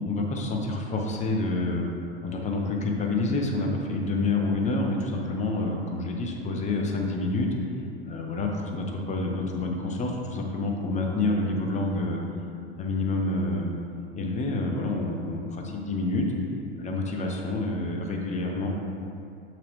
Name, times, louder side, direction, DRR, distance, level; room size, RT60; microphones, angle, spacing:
voice 1, 0.0-1.8 2.2-7.5 8.1-12.2 12.8-13.7 14.2-16.3 16.8-18.7, left 2 dB, 20° left, 1 dB, 0.9 m, -28 dB
6.5 x 5.9 x 3.1 m, 2.4 s
figure-of-eight pair, 85°, 32 cm